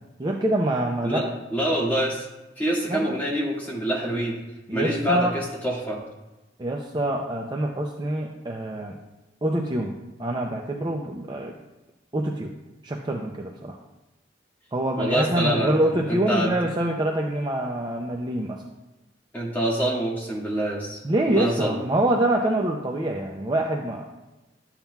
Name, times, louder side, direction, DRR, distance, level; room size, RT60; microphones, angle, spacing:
voice 1, 0.2-1.2 2.9-3.1 4.7-5.4 6.6-9.0 9.4-9.9 10.2-11.5 12.1-12.5 12.8-13.8 14.7-18.6 21.0-24.0, right 1 dB, 25° right, 1 dB, 0.5 m, -25 dB
voice 2, 1.0-2.3 2.6-4.4 4.7-6.0 15.0-15.8 16.1-16.5 19.3-21.0 21.3-21.8, right 1 dB, 10° left, -5 dB, 1.9 m, -26 dB
12.0 x 7.2 x 2.3 m, 1.1 s
head